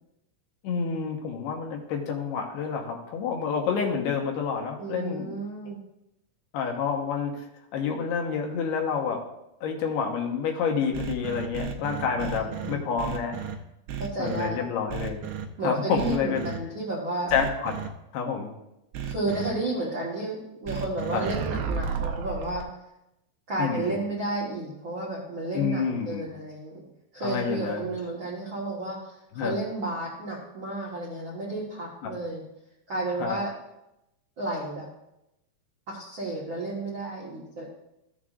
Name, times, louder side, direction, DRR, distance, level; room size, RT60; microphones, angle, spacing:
voice 1, 0.6-5.3 5.7-5.8 6.5-7.4 7.7-9.2 9.6-13.5 14.2-15.2 15.6-16.5 17.3-17.7 18.1-18.5 21.1-21.3 23.6-24.0 25.5-26.3 27.2-27.9 29.3-29.6 32.0-32.1 33.2-33.4, left 6 dB, 80° left, 1 dB, 3.1 m, -28 dB
voice 2, 4.8-5.8 12.1-12.8 14.0-14.6 15.6-17.3 19.0-22.6 23.5-26.8 27.1-32.4 32.9-33.5 34.4-34.9 35.9-37.6, right 2 dB, 60° right, -6 dB, 1.2 m, -32 dB
sound 1, 10.9-13.5 13.9-14.5 14.9-15.4 16.0-16.6 17.3-17.9 18.9-19.5 20.7-22.6, right 7 dB, 85° right, 2.8 m, -33 dB
14.5 x 7.2 x 2.5 m, 0.87 s
omnidirectional pair, 4.6 m